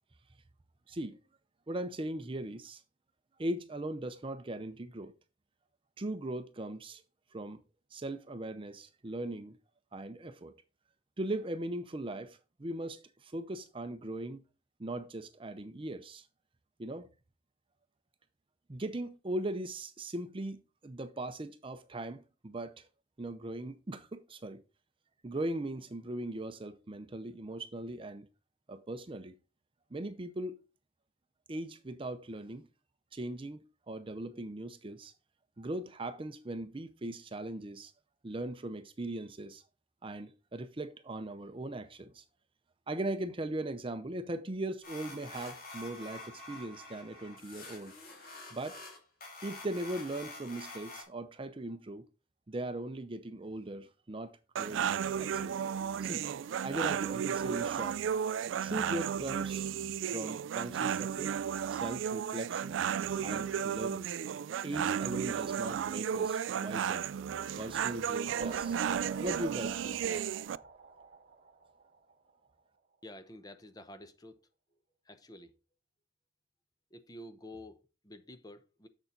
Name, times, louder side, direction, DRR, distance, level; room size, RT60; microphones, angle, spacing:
voice 1, 0.9-1.2 1.7-2.8 3.4-5.1 6.0-7.0 7.3-7.6 7.9-9.6 9.9-10.5 11.2-14.4 14.8-16.3 16.8-17.1 18.7-22.9 23.2-24.6 25.2-28.3 28.7-29.4 29.9-30.6 31.5-32.7 33.1-35.1 35.6-37.9 38.2-39.6 40.0-42.2 42.9-47.9 48.5-48.8 49.4-52.0 52.5-54.9 55.2-55.5 56.0-56.3 56.6-58.0 58.6-59.7 60.1-61.3 61.7-62.8 63.2-64.1 64.6-67.1 67.6-68.8 69.2-70.3, right 1 dB, 30° right, 0.6 m, -39 dB
sound 1, 44.8-51.0, left 2 dB, 50° left, 2.7 m, -47 dB
sound 2, 54.6-70.6, right 8 dB, 75° right, 0.3 m, -34 dB
sound 3, 67.4-72.3, right 3 dB, 50° right, 1.0 m, -47 dB
voice 2, 73.0-74.4 75.1-75.5 76.9-78.9, left 1 dB, 20° left, 0.7 m, -50 dB
7.0 x 6.8 x 3.8 m
head